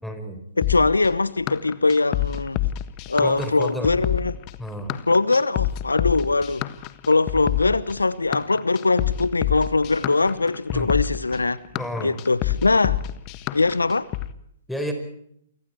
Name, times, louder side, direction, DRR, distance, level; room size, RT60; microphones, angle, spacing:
voice 1, 0.0-0.4 3.2-3.9 4.6-4.9 10.7-10.9 11.7-12.1 14.7-14.9, equal, 5° left, 5.1 m, -30 dB
voice 2, 0.6-2.6 3.1-4.4 5.1-6.6 7.1-11.6 12.0-13.0 13.5-14.1, left 3 dB, 85° left, 0.9 m, -21 dB
sound 1, 0.6-14.3, left 14 dB, 35° left, 1.5 m, -27 dB
28.5 x 25.0 x 4.6 m
figure-of-eight pair, 120°, 0 cm